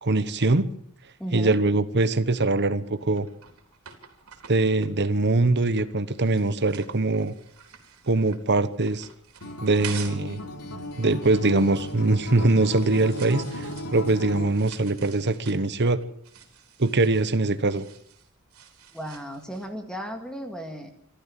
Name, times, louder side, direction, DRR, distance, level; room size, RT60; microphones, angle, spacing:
voice 1, 0.0-0.7 1.3-3.3 4.5-7.3 8.1-9.1 9.6-10.4 11.0-16.0 16.8-17.9, right 2 dB, 50° right, 13 dB, 1.1 m, -22 dB
voice 2, 1.2-1.6 18.9-20.9, equal, 5° left, 5 dB, 1.9 m, -35 dB
sound 1, 2.9-10.3 10.7-19.7, right 8 dB, 75° right, 4.0 m, -47 dB
Acoustic guitar, 9.4-14.5, left 1 dB, 80° left, 3.2 m, -36 dB
26.0 x 13.5 x 7.5 m, 0.64 s
head